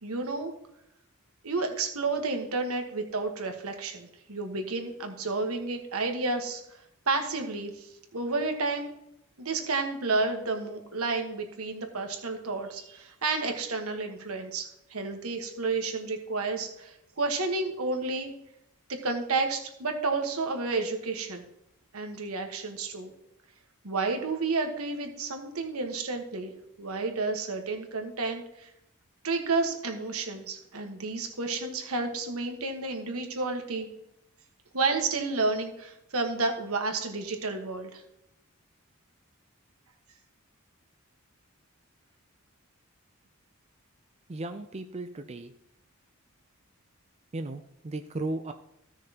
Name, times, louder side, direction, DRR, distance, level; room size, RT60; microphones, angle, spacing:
voice 1, 0.0-0.5 1.4-6.6 7.1-8.9 9.4-18.3 18.9-21.4 21.9-23.1 23.8-26.5 26.8-28.7 29.2-33.9 34.7-38.0, right 3 dB, 80° right, 5 dB, 1.4 m, -31 dB
voice 2, 44.3-45.5 47.3-48.5, right 2 dB, 30° right, 8 dB, 0.5 m, -35 dB
15.5 x 6.4 x 2.9 m, 0.80 s
head